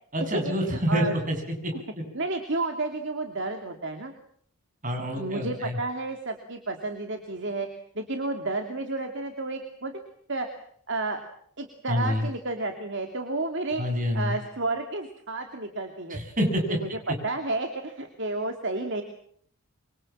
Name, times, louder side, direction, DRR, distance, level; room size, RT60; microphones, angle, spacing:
voice 1, 0.1-1.7 4.8-5.8 11.9-12.2 13.8-14.4 16.1-16.8, equal, 35° right, 4 dB, 7.5 m, -27 dB
voice 2, 0.7-1.2 1.7-1.8 2.1-4.1 5.1-7.7 7.9-10.0 10.3-10.5 10.9-11.2 11.6-13.8 14.1-16.2 16.7-19.0, right 2 dB, 55° right, 4 dB, 2.8 m, -31 dB
27.0 x 24.5 x 7.4 m, 0.63 s
head